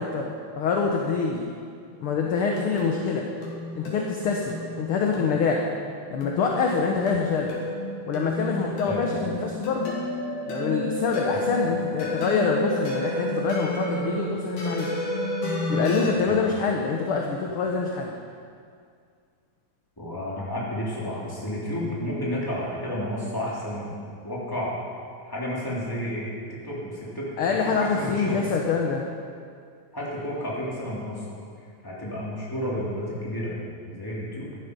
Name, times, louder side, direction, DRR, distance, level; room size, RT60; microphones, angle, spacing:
voice 1, 0.0-1.5 2.0-3.3 3.7-5.7 6.1-7.6 8.1-9.9 10.5-14.9 15.7-18.1 27.4-29.0, left 5 dB, 65° left, 0 dB, 1.5 m, -25 dB
sound 1, 1.9-16.1, left 1 dB, 80° left, 4.0 m, -31 dB
voice 2, 8.9-9.2 11.3-11.4 16.3-16.5 20.0-24.0 24.2-24.7 25.2-27.3 27.6-28.4 29.9-31.4 31.8-33.5 33.9-34.5, equal, 5° left, -6 dB, 2.9 m, -31 dB
14.5 x 11.0 x 5.4 m, 2.2 s
omnidirectional pair, 3.4 m